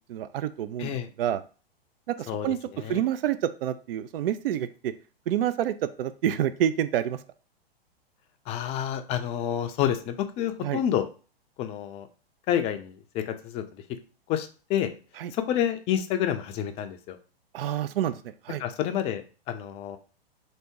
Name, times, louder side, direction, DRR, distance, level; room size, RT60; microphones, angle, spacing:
voice 1, 0.1-0.9 1.2-1.4 2.2-2.6 2.9-4.9 5.3-7.2 10.6-10.8 15.2-15.3 17.5-18.6, right 10 dB, 65° right, 13 dB, 0.5 m, -28 dB
voice 2, 2.3-3.0 8.5-11.1 11.6-12.1 12.5-13.8 14.3-14.9 15.3-17.2 18.6-20.0, left 10 dB, 20° left, 7 dB, 0.4 m, -29 dB
3.3 x 2.7 x 4.6 m, 0.36 s
hypercardioid pair, 120°, 31 cm